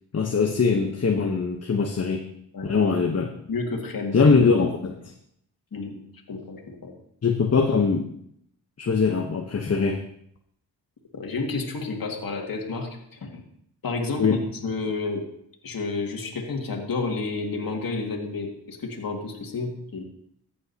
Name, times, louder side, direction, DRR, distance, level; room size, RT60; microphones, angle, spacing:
voice 1, 0.1-2.2 2.6-3.3 4.1-5.1 5.7-5.8 7.2-8.1 8.8-10.0 14.2-14.4, left 5 dB, 35° left, 3 dB, 1.0 m, -22 dB
voice 2, 3.5-4.2 5.7-6.0 6.3-6.9 11.1-13.4 13.8-14.4 14.6-15.2 15.6-20.0, left 3 dB, 55° left, 0 dB, 2.2 m, -30 dB
14.5 x 7.6 x 2.9 m, 0.70 s
cardioid pair, 55°, 41 cm